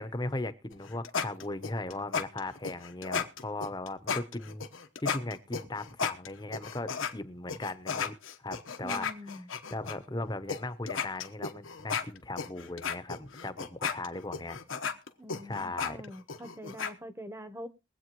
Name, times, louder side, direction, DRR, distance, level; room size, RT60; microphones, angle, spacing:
voice 1, 0.0-4.7 5.0-9.1 9.7-14.9 15.4-16.0, left 2 dB, 20° left, 13 dB, 0.7 m, -38 dB
sound 1, 0.7-7.1 7.5-9.9 10.5-10.6 10.9-16.9, left 6 dB, 90° left, 1.1 m, -34 dB
voice 2, 8.8-9.5 15.2-17.7, equal, 15° right, 10 dB, 0.9 m, -44 dB
22.5 x 8.3 x 3.0 m, 0.27 s
head